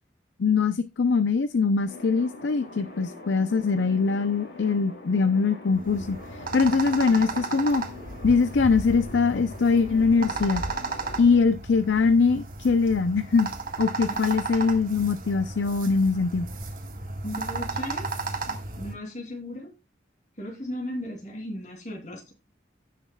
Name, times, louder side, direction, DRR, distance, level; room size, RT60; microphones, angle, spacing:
voice 1, 0.4-6.2 6.5-7.8 8.2-10.6 11.2-13.5 13.8-16.5, left 4 dB, 90° left, 0.5 m, -22 dB
sound 1, 1.9-11.4, left 3 dB, 60° left, 4.0 m, -43 dB
sound 2, 5.7-18.9, right 3 dB, 50° right, 1.5 m, -34 dB
voice 2, 17.2-18.1 18.5-19.7 20.4-22.3, left 1 dB, 40° left, 2.8 m, -36 dB
16.0 x 6.6 x 2.3 m
head